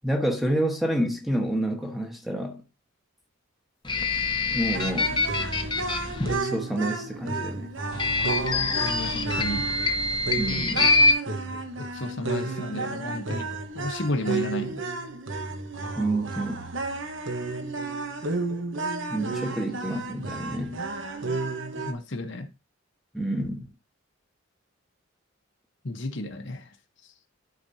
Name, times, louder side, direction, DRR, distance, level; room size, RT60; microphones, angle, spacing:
voice 1, 0.0-2.6 4.5-5.1 6.2-7.7 10.4-10.9 16.0-16.7 19.1-20.8 23.1-23.6, right 1 dB, ahead, 1.2 m, -28 dB
sound 1, 3.8-6.4 7.9-11.1, left 3 dB, 20° left, 0.9 m, -25 dB
sound 2, 4.7-21.9, right 3 dB, 60° right, 1.2 m, -32 dB
voice 2, 8.8-9.7 11.9-13.5 13.7-14.8 21.8-22.5 25.8-26.7, left 1 dB, 55° left, 1.1 m, -32 dB
12.0 x 5.2 x 2.8 m
head